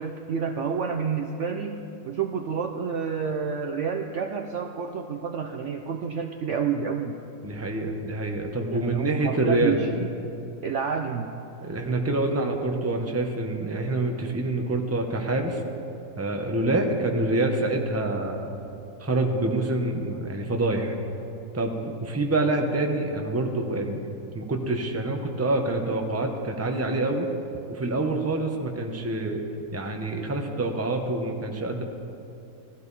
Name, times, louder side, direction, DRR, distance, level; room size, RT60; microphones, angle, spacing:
voice 1, 0.0-1.8 2.1-7.2 8.7-10.2 10.6-11.3, right 6 dB, 65° right, 5 dB, 0.8 m, -29 dB
voice 2, 7.4-9.8 11.6-15.6 16.2-18.5 19.0-20.9 21.5-24.0 24.3-27.3 27.7-29.4 29.7-31.8, right 2 dB, 10° right, 3 dB, 0.8 m, -26 dB
17.5 x 14.0 x 4.1 m, 2.7 s
omnidirectional pair, 1.7 m